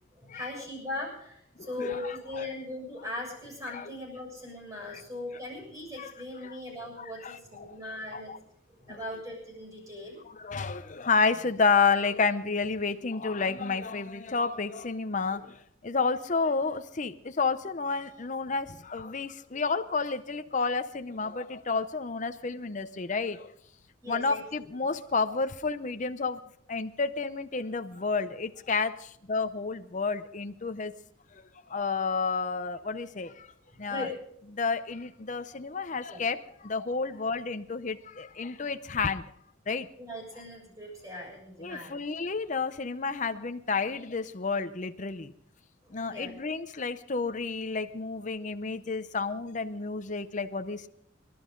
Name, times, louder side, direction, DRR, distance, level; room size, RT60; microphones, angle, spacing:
voice 1, 0.1-8.3 8.8-10.2 24.0-24.4 33.8-34.1 36.1-36.2 40.0-42.0 45.8-46.4, left 2 dB, 15° right, -1 dB, 6.8 m, -39 dB
voice 2, 1.6-2.5 3.7-3.9 4.9-5.0 6.0-6.1 6.4-6.5 7.0-7.8 8.1-8.4 8.9-9.0 10.3-23.5 24.1-26.4 26.7-31.0 31.3-31.4 31.7-33.5 33.8-34.1 34.5-39.3 39.7-39.9 41.6-45.3 45.9-50.9, left 4 dB, 40° left, 10 dB, 0.6 m, -30 dB
24.5 x 12.0 x 3.8 m, 0.72 s
head